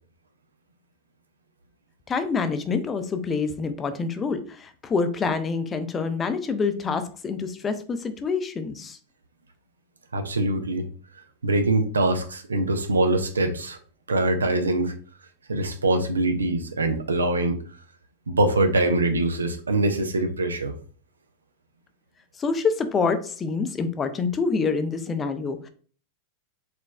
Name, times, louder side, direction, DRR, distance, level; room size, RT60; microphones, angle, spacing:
voice 1, 2.1-9.0 22.4-25.7, left 4 dB, 20° left, 9 dB, 0.4 m, -26 dB
voice 2, 10.1-10.9 11.4-13.8 14.1-14.9 15.5-17.6 18.3-20.7, right 2 dB, 75° right, 8 dB, 0.5 m, -23 dB
4.0 x 3.1 x 2.3 m, 0.42 s
figure-of-eight pair, 90°, 0 cm